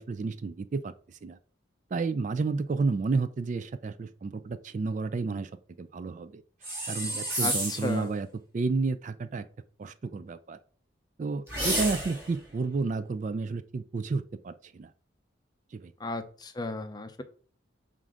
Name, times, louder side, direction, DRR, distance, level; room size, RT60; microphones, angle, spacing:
voice 1, 0.0-1.4 1.9-5.5 5.8-6.4 6.9-8.3 8.5-9.5 9.8-10.6 11.2-14.9 15.7-15.9, right 4 dB, 40° right, 12 dB, 0.3 m, -31 dB
sound 1, 6.6-8.0 11.5-12.3, right 1 dB, 10° right, 3.0 m, -30 dB
voice 2, 7.4-8.1 16.0-17.2, left 2 dB, 20° left, 9 dB, 0.5 m, -34 dB
7.4 x 2.5 x 5.0 m, 0.43 s
head